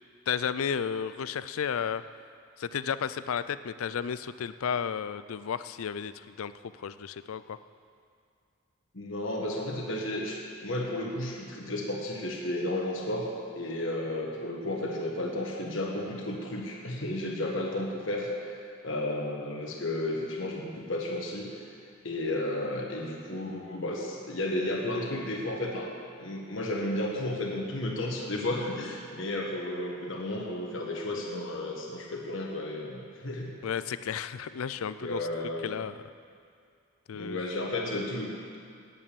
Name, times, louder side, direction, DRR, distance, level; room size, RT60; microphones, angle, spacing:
voice 1, 0.3-2.0 2.6-7.6 33.6-35.3 35.6-36.0 37.1-37.5, left 7 dB, 75° left, 14 dB, 0.4 m, -33 dB
voice 2, 8.9-18.6 18.8-21.7 22.0-25.9 26.2-33.6 35.0-35.7 37.1-38.6, left 1 dB, 60° left, -1 dB, 1.5 m, -33 dB
9.2 x 8.8 x 8.5 m, 2.3 s
head